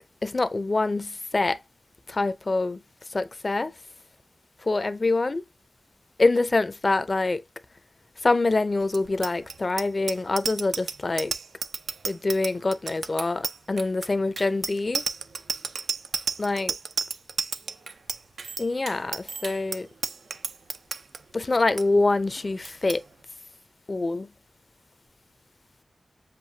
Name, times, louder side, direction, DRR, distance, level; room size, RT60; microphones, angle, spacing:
voice 1, 0.2-1.6 2.1-2.8 3.1-3.7 4.7-5.4 6.2-7.4 8.2-11.3 12.1-15.0 16.4-16.7 18.6-19.9 21.3-23.0 23.9-24.3, left 3 dB, 40° left, 0.6 m, -25 dB
Bicycle bell, 8.9-21.2 21.5-21.8 22.1-22.4 22.6-23.0, right 5 dB, 85° right, 0.5 m, -32 dB
7.6 x 2.6 x 2.7 m
wide cardioid pair, 75°, 0 cm